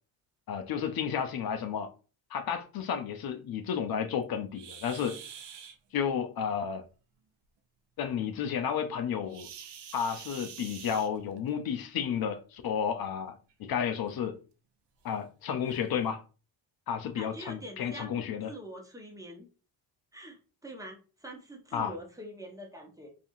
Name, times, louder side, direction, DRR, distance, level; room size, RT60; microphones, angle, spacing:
voice 1, 0.5-1.9 2.3-5.2 5.9-6.8 8.0-9.5 9.9-14.4 15.0-16.2 16.9-18.5 21.7-21.9, left 7 dB, 50° left, 0.5 m, -32 dB
sound 1, 4.5-5.8 9.3-11.5 12.8-12.9 13.5-13.6 14.2-14.3 15.1-15.2 15.6-15.8, right 8 dB, 60° right, 0.6 m, -46 dB
voice 2, 17.1-19.5 20.1-23.1, right 1 dB, 5° right, 0.9 m, -45 dB
2.6 x 2.4 x 2.6 m
cardioid pair, 75°, 46 cm